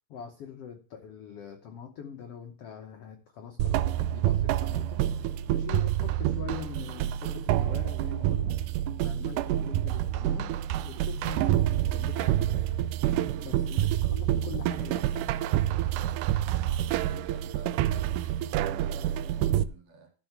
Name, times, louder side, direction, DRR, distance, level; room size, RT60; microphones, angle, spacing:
voice 1, 0.1-8.6 9.0-10.5 10.9-12.8 13.4-15.3, left 8 dB, 70° left, 5 dB, 1.5 m, -43 dB
sound 1, 3.6-19.6, right 12 dB, 80° right, 1.8 m, -28 dB
voice 2, 13.7-14.0 17.0-20.1, right 5 dB, 50° right, 2 dB, 2.9 m, -52 dB
13.0 x 5.7 x 5.8 m, 0.37 s
omnidirectional pair, 4.1 m